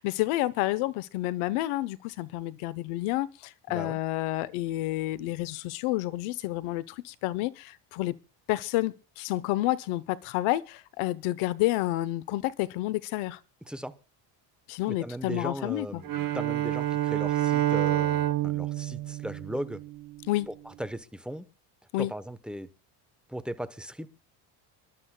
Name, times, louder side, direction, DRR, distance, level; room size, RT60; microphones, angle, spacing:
voice 1, 0.0-8.1 8.5-13.4 14.7-16.0 20.3-20.5 21.9-22.1, left 17 dB, 85° left, 1.0 m, -29 dB
voice 2, 14.9-16.1 16.3-19.8 20.5-21.4 22.0-22.7 23.3-24.1, equal, ahead, 1.0 m, -37 dB
Bowed string instrument, 16.0-20.3, right 13 dB, 45° right, 1.3 m, -28 dB
27.0 x 12.0 x 2.3 m
cardioid pair, 115°, 49 cm